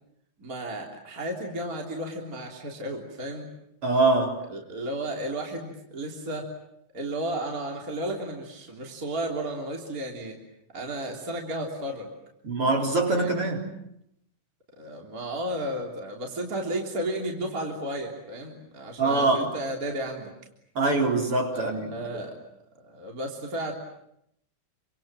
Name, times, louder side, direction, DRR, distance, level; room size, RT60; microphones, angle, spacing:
voice 1, 0.4-3.5 4.5-6.5 6.9-10.4 10.7-12.1 13.2-13.4 14.8-20.3 21.5-22.4 22.8-23.7, right 1 dB, 25° right, 3.7 m, -33 dB
voice 2, 3.8-4.4 12.4-13.7 19.0-19.5 20.7-21.9, right 3 dB, 45° right, 4.8 m, -23 dB
28.5 x 26.5 x 7.6 m
omnidirectional pair, 3.5 m